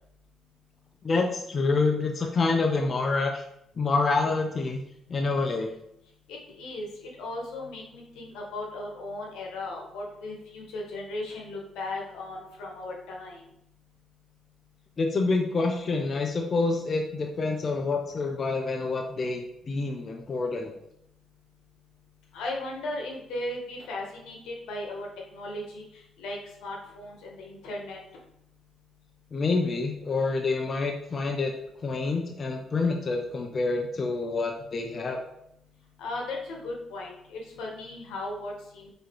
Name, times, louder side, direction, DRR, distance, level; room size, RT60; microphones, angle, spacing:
voice 1, 1.0-3.5 3.8-4.8 5.1-5.7 15.0-20.7 29.3-31.5 31.8-35.2, left 3 dB, 40° left, 3 dB, 0.5 m, -27 dB
voice 2, 6.3-13.4 22.3-25.8 26.2-28.0 36.0-38.9, left 2 dB, 90° left, -1 dB, 1.3 m, -37 dB
4.9 x 3.6 x 3.0 m, 0.78 s
cardioid pair, 90°, 0 cm